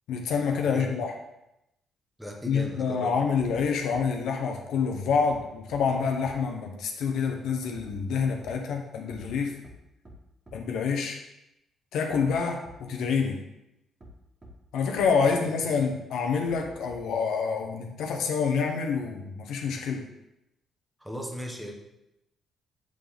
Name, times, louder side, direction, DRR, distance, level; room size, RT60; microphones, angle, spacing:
voice 1, 0.1-1.1 2.4-9.6 10.5-11.2 11.9-13.4 14.7-20.1, left 5 dB, 80° left, 3 dB, 0.8 m, -27 dB
voice 2, 0.6-1.1 2.2-3.1 15.6-15.7 21.0-21.7, equal, 5° right, 2 dB, 1.0 m, -37 dB
sound 1, 3.4-3.6 3.9-4.0 5.3-5.4 5.7-5.8 6.2-6.3 7.7-8.5 9.1-9.3 9.6-9.7 10.0-10.1 10.5-10.6 12.1-12.3 12.6-12.7 14.0-14.1 14.4-14.5 15.0-15.1 16.5-17.2, right 2 dB, 25° right, 1.6 m, -47 dB
7.6 x 3.8 x 3.5 m, 0.88 s
cardioid pair, 90°, 0 cm